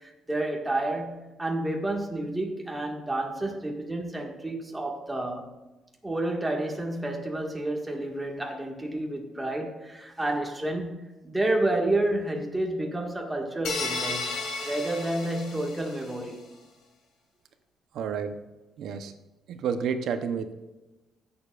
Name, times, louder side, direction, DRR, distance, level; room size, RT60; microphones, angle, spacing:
voice 1, 0.0-5.5 6.0-16.4, right 1 dB, 10° right, 1.7 m, -30 dB
sound 1, 13.6-16.1, left 3 dB, 85° left, 2.2 m, -33 dB
voice 2, 17.9-18.4 18.8-19.1 19.5-20.5, right 6 dB, 75° right, 0.8 m, -30 dB
15.5 x 7.0 x 2.5 m
cardioid pair, 110°, 0 cm